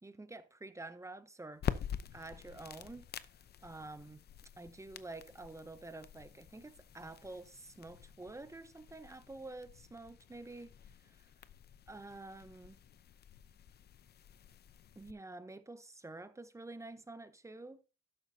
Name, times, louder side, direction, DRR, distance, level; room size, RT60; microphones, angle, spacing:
voice 1, 0.0-1.8 2.1-3.3 3.6-4.2 4.6-10.7 11.0-11.2 11.9-12.8 15.0-17.8, right 2 dB, 15° right, 0.9 m, -49 dB
sound 1, 1.6-15.1, left 9 dB, 55° left, 0.7 m, -47 dB
12.5 x 8.0 x 2.7 m
cardioid pair, 90°, 20 cm